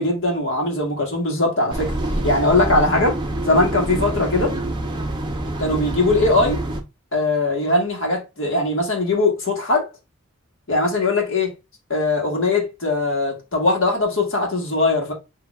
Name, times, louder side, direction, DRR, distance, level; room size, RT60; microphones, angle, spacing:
voice 1, 0.0-1.9 2.2-3.2 3.4-4.5 5.6-6.6 7.1-9.9 10.7-11.5 11.9-15.1, left 2 dB, 60° left, 1.4 m, -20 dB
sound 1, 1.7-6.8, right 1 dB, 20° right, 0.6 m, -26 dB
6.1 x 2.7 x 2.4 m
head